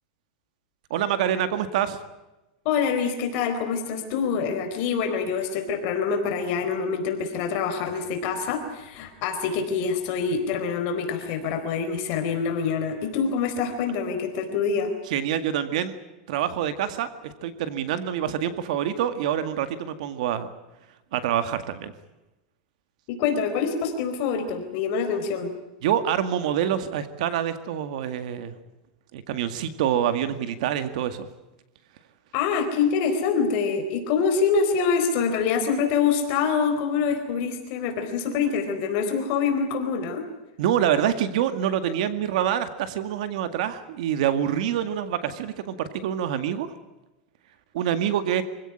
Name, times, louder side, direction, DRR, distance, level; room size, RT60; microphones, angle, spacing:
voice 1, 0.9-2.0 15.1-15.9 16.3-20.5 21.1-21.9 25.8-28.5 29.1-31.3 40.6-46.7 47.7-48.4, right 10 dB, 65° right, 11 dB, 2.0 m, -26 dB
voice 2, 2.6-14.9 23.1-25.5 32.3-40.2, left 6 dB, 45° left, 5 dB, 4.3 m, -25 dB
26.0 x 17.0 x 9.9 m, 1.0 s
supercardioid pair, 170°, 4 cm